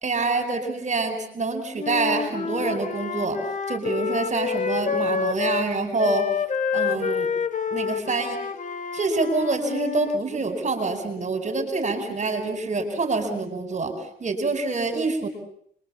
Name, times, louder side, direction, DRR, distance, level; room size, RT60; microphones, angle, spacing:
voice 1, 0.0-3.4 3.7-6.2 6.7-7.3 7.7-8.4 8.9-13.9 14.2-15.3, right 3 dB, 35° right, 7 dB, 4.8 m, -26 dB
Wind instrument woodwind instrument, 1.8-5.7 6.0-10.2, left 6 dB, 40° left, 1.8 m, -28 dB
26.5 x 23.0 x 7.2 m, 0.65 s
cardioid pair, 90°, 20 cm